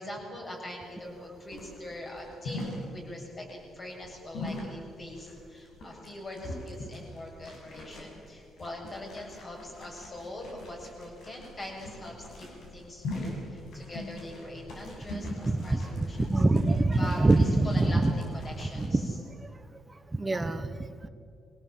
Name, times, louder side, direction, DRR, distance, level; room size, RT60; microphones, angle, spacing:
voice 1, 0.0-16.4 17.0-18.0 18.3-19.2, left 1 dB, 35° left, -1 dB, 7.5 m, -42 dB
sound 1, 0.9-18.9, left 1 dB, 70° left, 6.7 m, -42 dB
voice 2, 15.4-18.1 18.7-19.0 19.4-19.5 20.1-21.1, right 2 dB, 20° right, 8 dB, 1.3 m, -25 dB
23.5 x 17.5 x 7.7 m, 2.5 s
cardioid pair, 90°, 0 cm